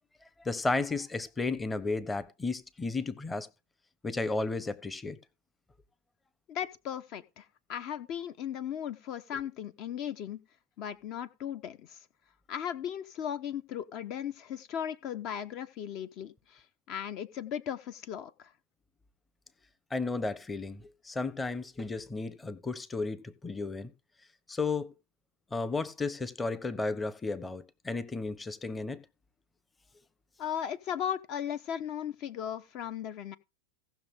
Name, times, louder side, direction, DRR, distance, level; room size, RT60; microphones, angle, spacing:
voice 1, 0.4-3.5 4.0-5.2 19.9-23.9 24.5-24.9 25.5-29.0, left 3 dB, 10° left, 0.9 m, -33 dB
voice 2, 6.5-10.4 10.8-12.1 12.5-18.5 30.4-33.4, left 9 dB, 45° left, 0.8 m, -37 dB
17.0 x 6.4 x 3.7 m
hypercardioid pair, 125°, 0 cm